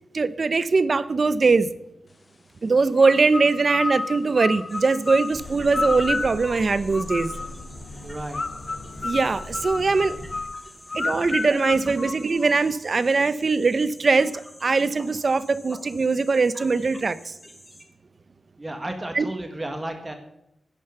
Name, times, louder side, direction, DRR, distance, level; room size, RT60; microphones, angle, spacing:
voice 1, 0.1-1.7 2.6-7.3 9.0-10.2 10.9-17.3 19.1-19.3, right 4 dB, 45° right, 15 dB, 0.7 m, -21 dB
sound 1, 2.9-7.7 8.3-12.8, left 3 dB, 35° left, 0.4 m, -31 dB
sound 2, 4.7-17.8, equal, 10° left, 3.1 m, -48 dB
sound 3, 5.3-10.4, left 2 dB, 75° left, 4.8 m, -40 dB
voice 2, 8.0-8.4 11.1-11.3 11.8-11.9 18.6-20.1, right 1 dB, 20° right, 5 dB, 1.8 m, -33 dB
11.5 x 10.0 x 7.9 m, 0.85 s
wide cardioid pair, 125°, 0 cm